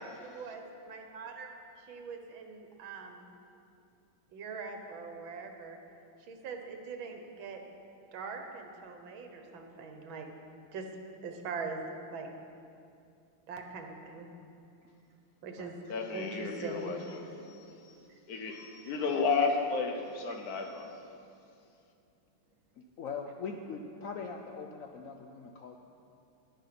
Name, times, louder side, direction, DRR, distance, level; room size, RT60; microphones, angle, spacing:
voice 1, 0.0-1.5 1.9-3.3 4.3-5.8 6.3-7.6 8.1-10.3 10.7-10.9 11.2-11.8 12.1-12.3 13.5-14.3 15.4-15.8 16.1-16.9, right 5 dB, 75° right, 4 dB, 1.8 m, -42 dB
voice 2, 15.9-17.9 18.3-20.9, left 4 dB, 55° left, 4 dB, 1.3 m, -33 dB
voice 3, 22.8-25.8, left 5 dB, 85° left, 3 dB, 0.7 m, -41 dB
10.5 x 10.0 x 5.9 m, 2.6 s
omnidirectional pair, 2.2 m